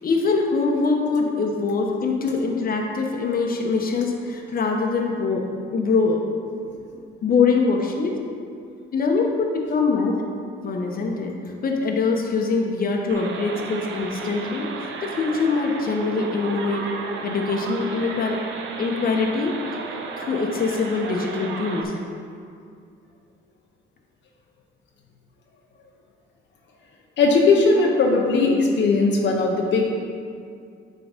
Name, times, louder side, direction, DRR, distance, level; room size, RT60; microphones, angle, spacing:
voice 1, 0.0-5.4 5.7-6.2 7.2-8.1 8.9-10.2 10.6-11.3 11.6-16.9 17.2-18.4 18.8-19.5 20.2-22.0, left 4 dB, 45° left, 1 dB, 1.0 m, -23 dB
sound 1, 13.1-21.8, right 4 dB, 70° right, 0.8 m, -34 dB
voice 2, 27.2-29.9, left 3 dB, 70° left, -1 dB, 0.9 m, -18 dB
8.5 x 3.9 x 5.2 m, 2.3 s
cardioid pair, 90°, 20 cm